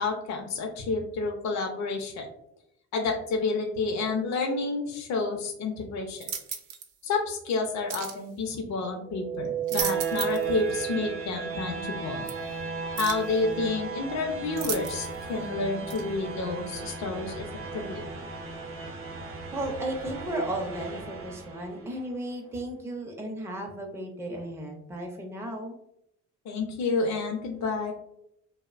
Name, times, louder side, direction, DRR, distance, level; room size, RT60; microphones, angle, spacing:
voice 1, 0.0-2.3 2.9-6.3 7.0-12.3 13.0-17.5 17.7-18.1 26.5-27.9, left 3 dB, 65° left, 2 dB, 0.5 m, -30 dB
sound 1, 6.2-6.9 7.9-8.2 9.4-10.5 10.8-10.9 12.3-12.4 13.0-13.3 14.6-15.2 15.9-16.0, right 8 dB, 85° right, 0.5 m, -35 dB
sound 2, 9.0-22.0, right 6 dB, 45° right, 0.6 m, -35 dB
voice 2, 19.5-25.8, right 1 dB, 10° right, 1 dB, 0.4 m, -34 dB
2.6 x 2.0 x 2.4 m, 0.77 s
cardioid pair, 90°, 30 cm